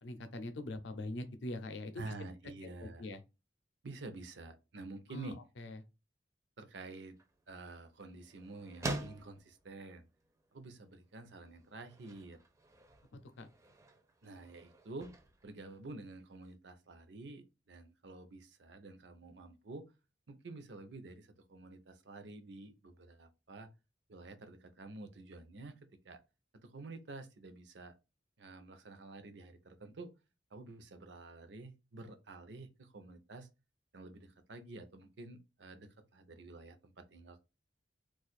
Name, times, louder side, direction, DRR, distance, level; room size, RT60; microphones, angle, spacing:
voice 1, 0.0-2.1 2.8-3.2 5.1-5.8 13.1-13.5, left 2 dB, 75° left, 0.5 m, -43 dB
voice 2, 2.0-3.1 3.8-5.4 6.6-7.2 7.5-10.1 10.5-12.4 14.2-15.2 15.4-19.9 20.3-23.7 24.1-26.2 26.6-27.9 28.4-30.1 30.5-33.5 33.9-37.4, right 2 dB, 70° right, 0.6 m, -49 dB
sound 1, 6.8-16.6, right 2 dB, 15° right, 0.4 m, -48 dB
2.5 x 2.4 x 4.1 m
head